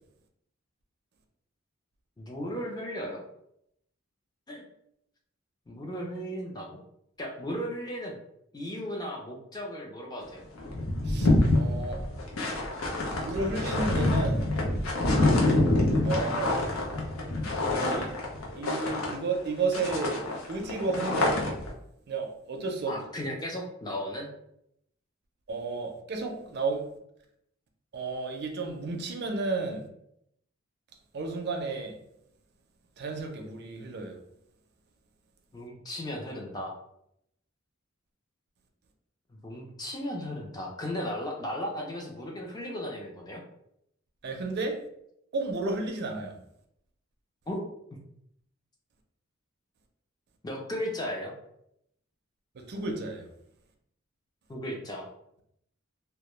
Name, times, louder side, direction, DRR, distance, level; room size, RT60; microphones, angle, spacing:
voice 1, 2.2-3.2 4.5-4.6 5.7-6.8 7.2-8.1 8.5-10.4 22.9-24.3 35.5-36.7 39.3-43.4 47.5-47.6 50.4-51.3 54.5-55.1, equal, 20° left, 0 dB, 0.4 m, -36 dB
sound 1, 10.2-10.3 10.6-19.5 19.7-21.7, left 2 dB, 90° left, 0.6 m, -26 dB
voice 2, 11.0-12.0 13.2-14.5 16.0-16.5 17.7-18.1 18.6-20.2 20.5-21.6 22.1-23.0 25.5-26.8 27.9-29.9 31.1-32.0 33.0-34.2 44.2-44.7 45.3-46.4 52.5-53.3, right 3 dB, 50° right, 3 dB, 0.4 m, -32 dB
2.1 x 2.1 x 2.9 m, 0.75 s
head